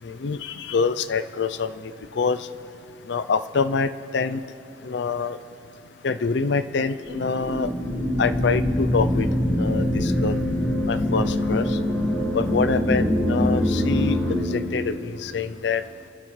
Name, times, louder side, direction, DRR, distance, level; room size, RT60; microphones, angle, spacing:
voice 1, 0.0-2.5 3.1-4.4 4.8-5.4 6.0-7.7 8.2-9.3 9.5-10.3 10.9-11.8 12.3-15.8, left 5 dB, 60° left, 12 dB, 0.5 m, -26 dB
sound 1, 7.1-14.3, left 1 dB, 10° left, 1.8 m, -23 dB
27.5 x 12.0 x 3.2 m, 2.9 s
head